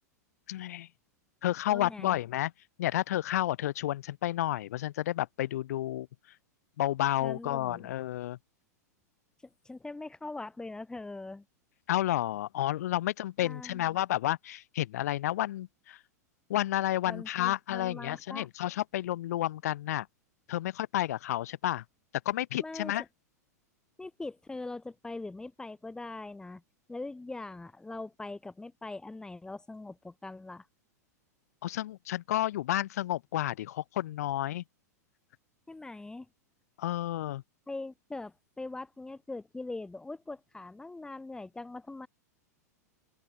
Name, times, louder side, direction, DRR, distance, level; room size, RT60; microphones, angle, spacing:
voice 1, 0.5-0.9 1.4-2.5 2.8-6.1 6.8-8.4 11.9-16.0 16.5-20.1 20.5-21.8 22.3-23.0 31.6-34.6 36.8-37.4, left 14 dB, 65° left, 2.5 m, -31 dB
voice 2, 1.7-2.2 7.2-7.9 9.4-11.4 13.4-14.0 17.1-18.5 22.6-23.1 24.0-26.6 26.9-30.7 35.7-36.3 37.7-42.1, left 2 dB, 10° left, 3.0 m, -42 dB
open air
hypercardioid pair, 100°, 9 cm